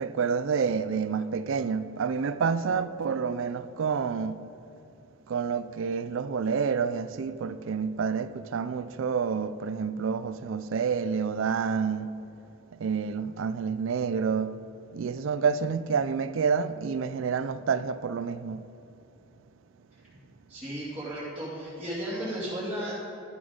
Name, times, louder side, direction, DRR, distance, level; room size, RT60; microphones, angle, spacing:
voice 1, 0.0-4.4 5.3-12.2 12.8-14.6 14.9-18.6, right 6 dB, 70° right, 0.4 m, -28 dB
voice 2, 20.5-23.0, equal, 5° right, 2.5 m, -34 dB
12.5 x 7.1 x 5.1 m
head